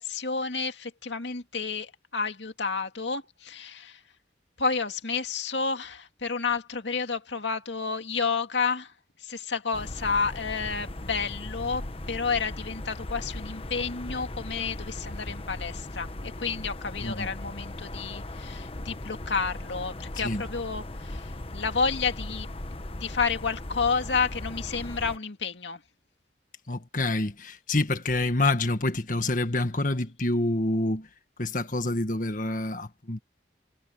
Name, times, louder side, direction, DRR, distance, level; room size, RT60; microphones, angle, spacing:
voice 1, 0.0-4.0 4.6-8.9 9.2-22.5 22.9-25.8, left 5 dB, 85° left, 2.2 m, -30 dB
sound 1, 9.7-25.2, left 1 dB, 30° left, 1.1 m, -38 dB
voice 2, 26.7-31.1 31.4-33.2, left 2 dB, 45° left, 1.8 m, -27 dB
head